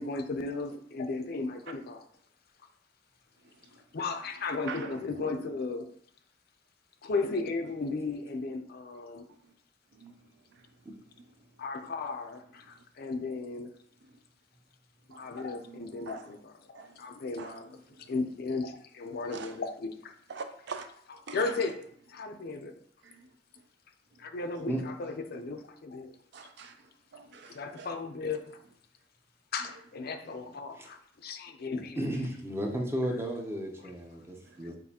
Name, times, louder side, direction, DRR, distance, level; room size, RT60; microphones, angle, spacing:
voice 1, 0.0-2.0 3.9-5.9 7.0-9.3 11.6-13.7 15.1-17.7 18.1-20.2 21.3-21.8 22.1-22.8 24.2-26.1 27.5-28.6 29.5-32.0, left 3 dB, 55° left, 0.4 m, -35 dB
voice 2, 3.4-3.8 4.7-5.0 9.3-9.5 9.9-10.8 11.1-11.6 12.7-12.8 14.0-14.2 15.1-16.3 16.7-17.1 17.4-18.2 19.1-19.6 20.3-20.9 21.3-21.7 22.2-22.3 23.0-23.7 24.1-24.3 25.0-25.1 26.3-27.9 29.6-29.7 32.3-32.4 34.4-34.7, right 5 dB, 60° right, 0.4 m, -46 dB
voice 3, 32.0-34.8, right 1 dB, 15° right, 0.6 m, -34 dB
6.3 x 2.6 x 2.8 m
head